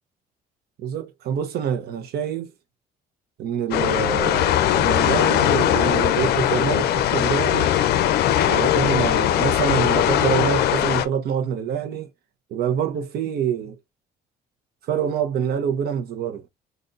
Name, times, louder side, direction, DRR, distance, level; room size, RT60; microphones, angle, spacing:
voice 1, 0.8-2.5 3.4-7.7 8.5-12.1 12.5-13.8 14.9-16.4, right 8 dB, 70° right, 1.0 m, -26 dB
sound 1, 3.7-11.1, left 11 dB, 70° left, 0.5 m, -20 dB
4.0 x 2.6 x 3.7 m
cardioid pair, 110°, 17 cm